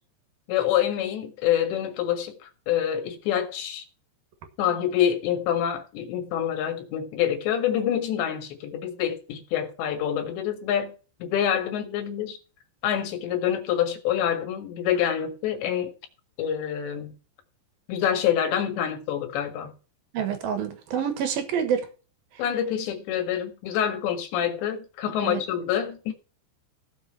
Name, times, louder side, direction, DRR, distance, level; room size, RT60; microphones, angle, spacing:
voice 1, 0.5-3.8 4.6-10.9 11.2-12.4 12.8-15.9 16.4-17.2 17.9-19.7 22.4-26.1, left 10 dB, 65° left, 3.9 m, -26 dB
voice 2, 20.1-21.9 25.2-25.4, right 8 dB, 65° right, 2.6 m, -27 dB
16.5 x 5.8 x 5.6 m
omnidirectional pair, 5.7 m